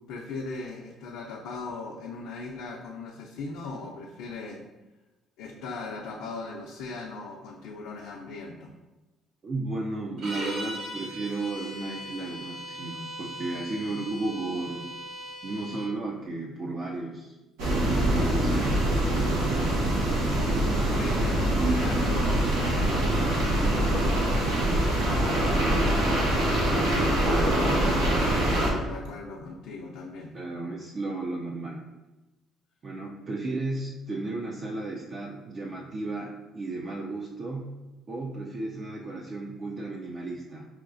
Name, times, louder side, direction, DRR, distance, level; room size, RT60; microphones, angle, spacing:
voice 1, 0.1-4.6 5.4-8.7 20.9-30.3, left 3 dB, 85° left, -3 dB, 0.5 m, -39 dB
voice 2, 9.4-14.9 15.4-18.8 30.3-31.9 32.8-37.8 38.1-40.7, right 2 dB, 40° right, -1 dB, 0.4 m, -34 dB
sound 1, 10.2-15.9, equal, 75° right, 1.3 m, -39 dB
sound 2, 17.6-28.7, right 1 dB, 90° right, 0.8 m, -24 dB
5.7 x 2.3 x 2.5 m, 1.1 s
cardioid pair, 95°, 0 cm